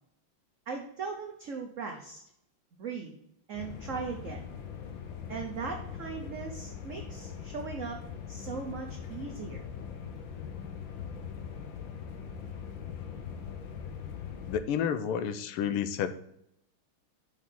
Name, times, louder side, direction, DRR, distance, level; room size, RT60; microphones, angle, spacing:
voice 1, 0.7-2.2 2.8-3.1 3.5-4.4 5.3-8.0 8.3-9.6, right 5 dB, 60° right, 2 dB, 0.8 m, -38 dB
sound 1, 3.5-14.6, left 7 dB, 65° left, 1.5 m, -41 dB
voice 2, 14.5-16.1, left 8 dB, 85° left, 11 dB, 1.5 m, -30 dB
5.6 x 5.0 x 5.7 m, 0.76 s
omnidirectional pair, 2.4 m